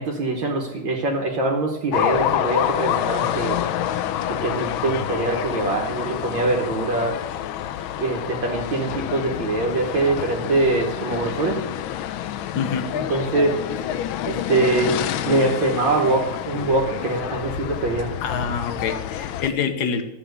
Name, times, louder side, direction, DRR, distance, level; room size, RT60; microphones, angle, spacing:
voice 1, 0.0-3.6 4.4-7.2 8.0-11.6 13.1-13.5 14.3-18.1, right 2 dB, 60° right, 0 dB, 2.0 m, -23 dB
sound 1, 1.9-19.5, left 11 dB, 75° left, 1.4 m, -27 dB
voice 2, 12.5-12.9 18.2-20.0, left 6 dB, 55° left, 9 dB, 1.4 m, -26 dB
13.0 x 6.2 x 8.0 m, 0.98 s
omnidirectional pair, 2.4 m